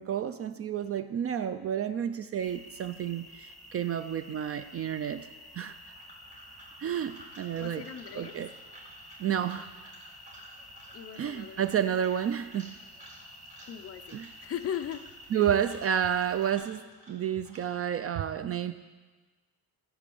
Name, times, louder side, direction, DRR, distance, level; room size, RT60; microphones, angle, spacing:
voice 1, 0.0-5.3 5.5-5.8 6.8-7.8 8.2-8.5 9.2-9.7 11.2-12.7 14.1-14.3 15.3-16.8 17.1-18.8, right 9 dB, 40° right, 11 dB, 0.4 m, -30 dB
sound 1, 2.4-16.5, left 1 dB, ahead, 1.6 m, -51 dB
sound 2, 5.7-18.0, right 1 dB, 20° right, 3.8 m, -54 dB
voice 2, 7.6-8.3 10.9-11.8 13.6-15.1 15.3-15.5, left 9 dB, 40° left, 7 dB, 0.7 m, -39 dB
16.5 x 8.5 x 7.0 m, 1.3 s
cardioid pair, 170°, 36 cm